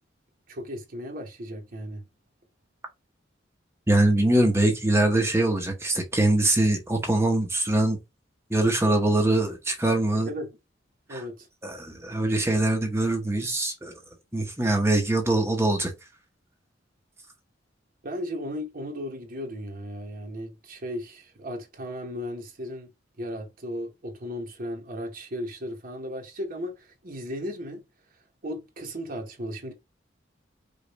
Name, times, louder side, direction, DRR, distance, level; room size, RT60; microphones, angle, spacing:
voice 1, 0.5-2.0 10.3-10.5 11.1-11.5 18.0-22.9 23.2-27.8 28.4-29.7, equal, 50° right, 1.0 m, -35 dB
voice 2, 3.9-8.0 8.5-10.3 11.1-11.2 11.6-13.9 14.3-15.9, right 2 dB, 15° right, 0.8 m, -23 dB
5.1 x 2.4 x 4.0 m
head